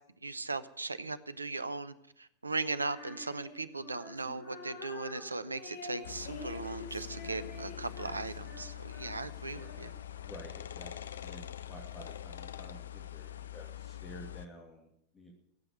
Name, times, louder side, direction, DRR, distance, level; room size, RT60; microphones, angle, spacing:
voice 1, 0.2-9.9, right 3 dB, 80° right, 14 dB, 0.8 m, -38 dB
Female singing, 2.8-10.1, left 1 dB, 45° left, 4.0 m, -47 dB
sound 1, 6.0-14.5, left 11 dB, 65° left, 0.6 m, -44 dB
voice 2, 10.2-15.3, equal, 20° left, 0 dB, 2.7 m, -51 dB
15.5 x 7.9 x 9.6 m, 0.75 s
figure-of-eight pair, 90°, 0 cm